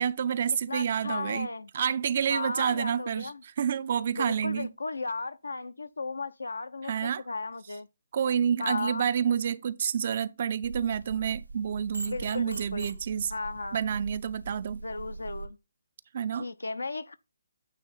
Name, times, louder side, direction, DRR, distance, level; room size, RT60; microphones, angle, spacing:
voice 1, 0.0-1.5 1.7-4.7 6.9-7.2 8.1-13.3 13.7-14.8 16.1-16.5, right 8 dB, 45° right, 0.5 m, -29 dB
voice 2, 0.7-1.7 2.3-3.4 4.1-7.9 8.6-9.1 12.0-12.9 13.3-13.8 14.8-15.6 16.4-17.2, left 3 dB, 75° left, 0.7 m, -35 dB
sound 1, 10.6-15.5, right 3 dB, 85° right, 0.9 m, -41 dB
9.1 x 3.4 x 5.5 m
figure-of-eight pair, 140°, 0 cm